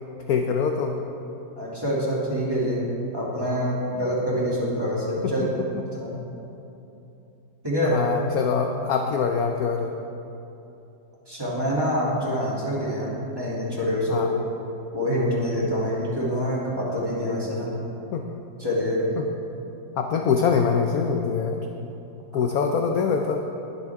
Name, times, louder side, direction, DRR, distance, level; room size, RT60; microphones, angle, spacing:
voice 1, 0.3-1.0 5.4-5.5 5.7-5.8 7.8-10.0 14.1-14.3 18.1-18.2 19.2-19.3 20.0-21.7 22.3-23.5, left 6 dB, 65° left, 3 dB, 1.0 m, -24 dB
voice 2, 1.6-2.9 3.1-5.4 6.0-6.2 7.6-8.0 11.3-14.3 14.9-17.7 18.6-19.1, equal, 10° right, -7 dB, 2.6 m, -26 dB
20.5 x 8.2 x 3.6 m, 2.9 s
omnidirectional pair, 2.1 m